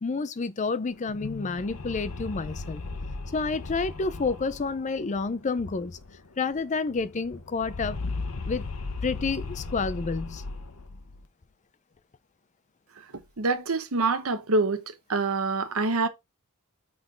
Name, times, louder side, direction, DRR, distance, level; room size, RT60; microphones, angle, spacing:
voice 1, 0.0-2.8 3.3-6.0 6.4-8.0 8.5-8.7 9.0-10.4, left 4 dB, 35° left, 0.5 m, -29 dB
sound 1, 0.9-6.3 6.5-6.6 6.9-11.2, left 3 dB, 80° left, 0.9 m, -37 dB
voice 2, 13.4-14.8 15.1-16.1, right 3 dB, 70° right, 0.9 m, -25 dB
6.0 x 3.8 x 4.5 m
head